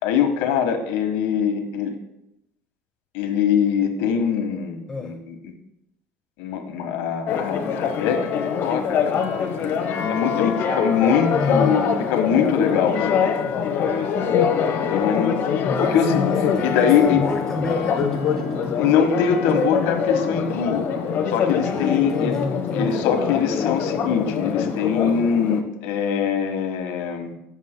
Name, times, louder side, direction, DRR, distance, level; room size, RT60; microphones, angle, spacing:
voice 1, 0.0-1.9 3.1-5.5 6.4-9.2 10.1-13.3 14.8-17.2 18.8-20.8 21.3-22.4 22.7-27.3, left 7 dB, 90° left, 5 dB, 1.4 m, -23 dB
Church bell, 7.3-25.6, left 6 dB, 45° left, 1.0 m, -24 dB
voice 2, 11.3-11.9 15.6-18.9 19.5-19.6 21.5-23.1, left 3 dB, 10° left, 4 dB, 0.6 m, -29 dB
20.5 x 7.2 x 2.2 m, 0.86 s
cardioid pair, 165°, 5 cm